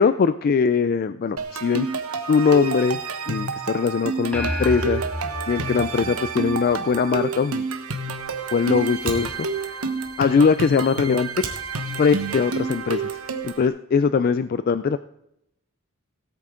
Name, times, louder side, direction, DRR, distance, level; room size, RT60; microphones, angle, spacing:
voice 1, 0.0-1.9 2.3-3.0 3.3-5.1 5.5-7.6 8.5-9.3 9.6-9.8 10.2-11.4 12.0-15.0, left 5 dB, 45° left, 13 dB, 0.3 m, -21 dB
sound 1, 1.4-13.7, right 4 dB, 85° right, 1.2 m, -29 dB
sound 2, 4.3-7.0, equal, 5° left, 1.2 m, -31 dB
Fire, 8.1-13.5, right 3 dB, 65° right, 2.4 m, -40 dB
17.5 x 8.5 x 3.7 m, 0.81 s
head